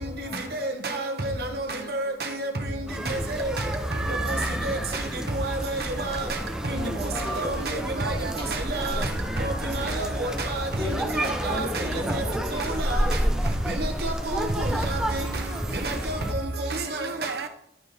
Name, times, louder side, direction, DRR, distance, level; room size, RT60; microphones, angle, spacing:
voice 1, 0.0-0.5 1.0-1.3 1.8-1.9 3.0-3.5 3.9-4.0 4.5-5.2 6.6-8.6 10.7-12.7, left 1 dB, 25° left, 1.4 m, -37 dB
voice 2, 0.5-2.5 3.1-3.5 4.3-4.4 4.6-4.8 5.3-6.2 6.7-6.8 7.4-7.7 8.0-8.1 8.7-9.0 9.4-10.7 11.2-11.7 12.1-12.2 12.5-13.0 13.8-15.2 15.7-17.1, right 2 dB, 60° right, 1.1 m, -29 dB
sound 1, 2.9-16.3, equal, 5° right, 0.5 m, -30 dB
voice 3, 7.3-9.5 16.6-17.5, right 4 dB, 80° right, 0.5 m, -37 dB
11.0 x 4.4 x 3.3 m
head